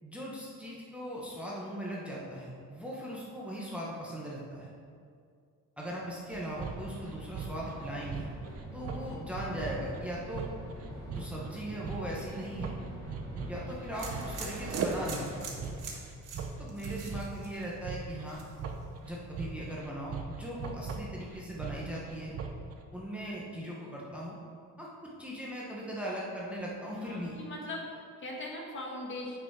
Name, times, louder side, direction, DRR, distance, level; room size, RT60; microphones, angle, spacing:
voice 1, 0.0-4.7 5.8-8.3 8.7-10.5 11.1-12.8 13.5-15.5 16.6-18.4 19.0-22.3 22.9-24.4 24.8-27.3, right 1 dB, 5° right, -5 dB, 1.0 m, -39 dB
sound 1, 6.3-22.7, right 5 dB, 50° right, 0.7 m, -39 dB
sound 2, 6.6-15.6, equal, 15° left, 1.6 m, -46 dB
sound 3, 13.9-18.0 18.3-18.8, right 3 dB, 80° right, 1.6 m, -43 dB
voice 2, 26.9-29.4, left 2 dB, 40° left, -2 dB, 1.5 m, -40 dB
9.4 x 5.8 x 4.7 m, 2.2 s
cardioid pair, 175°, 31 cm